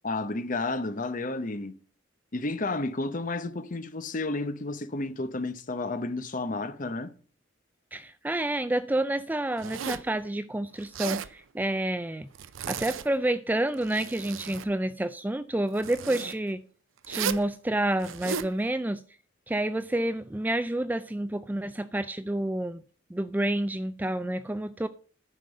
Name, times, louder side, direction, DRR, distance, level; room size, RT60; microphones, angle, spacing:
voice 1, 0.0-1.7 2.3-7.1, left 2 dB, 40° left, 0.8 m, -31 dB
voice 2, 7.9-12.3 12.7-16.6 17.1-19.0 19.5-22.8 23.1-24.9, right 1 dB, 10° right, 0.3 m, -29 dB
Zipper (clothing), 9.6-10.1 10.8-11.3 12.3-13.2 13.7-14.7 15.8-16.3 17.0-17.5 18.0-18.5, right 8 dB, 85° right, 0.5 m, -35 dB
10.0 x 5.3 x 6.5 m
head